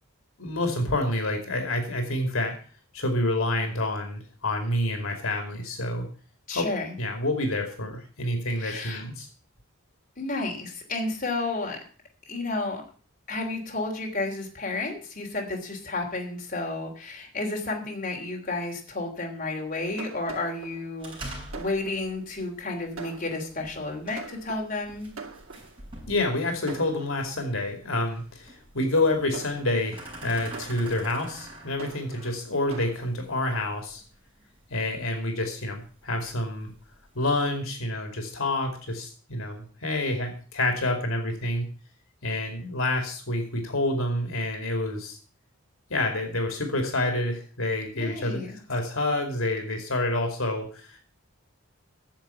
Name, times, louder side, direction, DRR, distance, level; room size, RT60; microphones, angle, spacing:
voice 1, 0.4-2.5 2.9-6.1 6.5-6.7 7.0-9.3 26.1-34.0 34.7-36.7 37.1-41.6 42.2-45.2 45.9-51.0, left 1 dB, 75° left, 5 dB, 2.6 m, -28 dB
voice 2, 6.5-6.9 8.6-9.0 10.2-11.8 12.3-12.8 13.3-25.1 47.9-48.6, left 2 dB, 40° left, 0 dB, 3.1 m, -32 dB
Fireworks, 19.6-26.0 26.7-27.6 28.1-28.4 29.0-33.1, right 4 dB, 75° right, 2.3 m, -44 dB
sound 1, 21.0-37.5, right 1 dB, 25° right, 5.4 m, -47 dB
10.5 x 7.4 x 8.3 m, 0.42 s
head